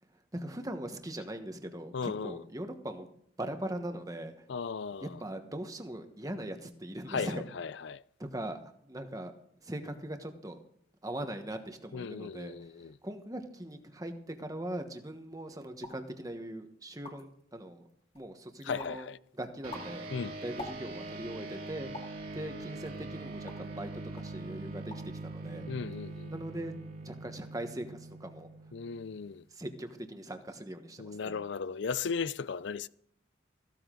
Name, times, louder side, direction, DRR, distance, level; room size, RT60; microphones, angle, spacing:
voice 1, 0.0-3.1 3.4-4.5 5.0-7.4 8.2-9.3 9.6-10.6 11.0-17.8 18.1-19.1 19.3-20.1 20.4-21.9 22.3-25.7 26.3-26.7 27.0-28.9 29.5-31.4, right 1 dB, 20° right, 1.3 m, -40 dB
voice 2, 1.9-2.4 4.5-5.1 7.1-8.0 11.9-12.9 18.6-19.2 20.1-20.4 25.7-26.3 28.7-29.4 31.0-32.9, left 5 dB, 65° left, 0.4 m, -36 dB
sound 1, 15.8-16.1 16.6-16.7 16.9-17.4 17.9-18.4 18.8-19.1 19.5-21.2 21.9-22.2 22.8-23.8 24.2-24.4 24.7-25.2 25.4-25.9, left 2 dB, 30° left, 2.0 m, -47 dB
sound 2, 19.6-29.4, right 2 dB, 50° right, 2.3 m, -43 dB
15.0 x 13.0 x 3.9 m
head